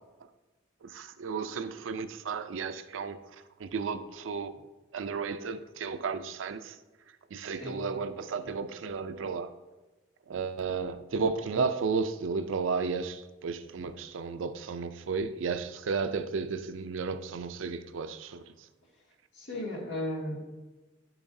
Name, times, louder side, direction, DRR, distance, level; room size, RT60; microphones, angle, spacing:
voice 1, 0.8-3.2 3.6-4.6 4.9-6.8 7.3-9.5 10.3-18.4, right 5 dB, 90° right, 0.4 m, -33 dB
voice 2, 19.4-20.5, left 1 dB, 65° left, 2.2 m, -35 dB
10.0 x 7.1 x 2.7 m
head